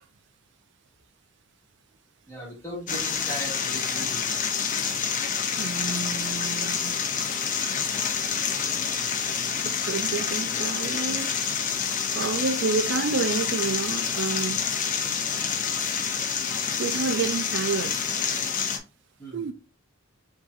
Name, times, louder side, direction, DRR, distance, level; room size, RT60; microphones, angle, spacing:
voice 1, 2.3-4.2 19.2-19.5, equal, 15° left, 2.0 m, -38 dB
sound 1, 2.9-18.8, left 6 dB, 35° left, 0.5 m, -28 dB
voice 2, 5.6-6.9 9.6-11.3 12.1-14.6 16.8-18.0 19.3-19.5, right 4 dB, 55° right, 0.4 m, -29 dB
5.6 x 2.7 x 2.4 m
head